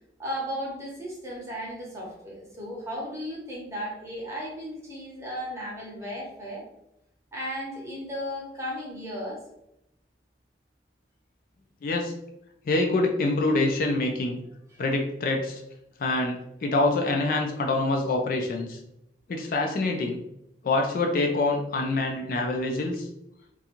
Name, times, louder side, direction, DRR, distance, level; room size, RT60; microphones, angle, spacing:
voice 1, 0.2-6.6 7.3-9.4 14.7-14.8, equal, 15° right, -4 dB, 0.7 m, -35 dB
voice 2, 11.8-12.1 12.7-14.4 14.8-15.6 16.0-18.8 19.3-20.2 20.6-23.1, left 2 dB, 50° left, 3 dB, 0.3 m, -25 dB
2.4 x 2.2 x 2.9 m, 0.82 s
head